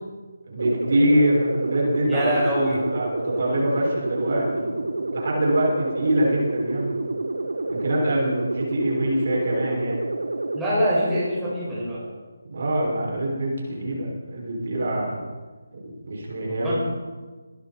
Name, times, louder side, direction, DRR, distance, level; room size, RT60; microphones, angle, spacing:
voice 1, 0.5-2.3 2.9-4.8 5.1-7.0 7.7-10.1 12.5-15.3 16.0-16.7, right 1 dB, 55° right, -3 dB, 6.3 m, -24 dB
sound 1, 0.6-10.6, right 2 dB, 75° right, 1.5 m, -29 dB
voice 2, 2.1-2.9 10.5-12.0 16.5-16.7, equal, 5° right, -11 dB, 5.5 m, -24 dB
22.5 x 10.5 x 4.5 m, 1.4 s
figure-of-eight pair, 155°, 0 cm